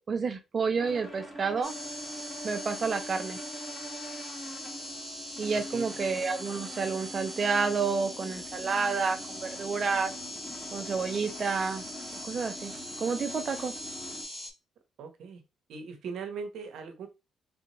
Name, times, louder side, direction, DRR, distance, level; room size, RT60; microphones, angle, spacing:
voice 1, 0.0-1.7 2.4-3.4 5.4-10.1 10.7-11.8 12.2-12.7 13.0-13.7, right 5 dB, 45° right, 7 dB, 0.7 m, -30 dB
sound 1, 0.8-14.2, equal, 10° left, 1.3 m, -44 dB
sound 2, 1.6-14.5, equal, 5° right, 1.3 m, -41 dB
voice 2, 5.5-6.0 15.0-15.4 15.7-17.1, right 5 dB, 75° right, 5 dB, 0.9 m, -40 dB
3.4 x 2.6 x 3.1 m, 0.25 s
cardioid pair, 90°, 0 cm